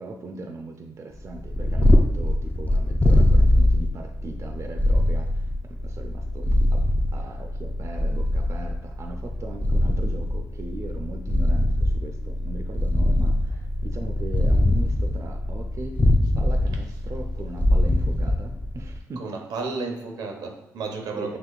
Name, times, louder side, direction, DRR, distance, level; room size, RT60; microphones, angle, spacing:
voice 1, 0.0-6.9 7.1-16.1 16.3-19.4 21.2-21.4, right 3 dB, 45° right, 4 dB, 0.5 m, -39 dB
Purr, 1.3-19.0, left 1 dB, 20° left, 0.4 m, -22 dB
voice 2, 19.2-21.4, right 4 dB, 80° right, 3 dB, 0.7 m, -32 dB
5.9 x 3.0 x 2.4 m, 0.88 s
cardioid pair, 70°, 7 cm